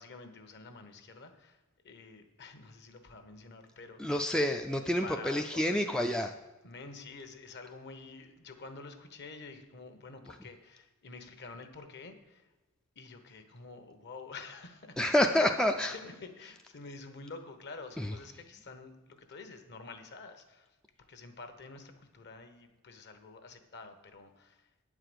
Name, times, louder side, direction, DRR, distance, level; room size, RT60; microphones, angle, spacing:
voice 1, 0.0-4.2 5.0-6.2 6.6-12.5 12.9-15.0 15.4-15.5 15.8-24.7, left 3 dB, 50° left, 7 dB, 1.0 m, -48 dB
voice 2, 4.0-6.3 15.0-15.9 18.0-18.1, left 1 dB, 5° left, 4 dB, 0.3 m, -28 dB
9.2 x 4.8 x 7.8 m, 1.1 s
head